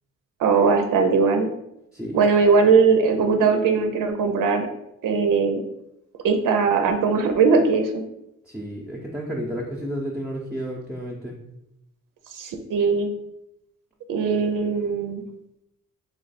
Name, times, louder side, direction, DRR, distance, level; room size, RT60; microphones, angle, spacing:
voice 1, 0.4-1.5 2.1-4.7 5.0-5.6 6.2-8.0 12.3-13.1 14.1-15.2, right 5 dB, 90° right, 5 dB, 0.5 m, -20 dB
voice 2, 8.4-11.3, equal, 5° right, -3 dB, 0.6 m, -31 dB
3.1 x 3.0 x 4.1 m, 0.83 s
cardioid pair, 95°, 31 cm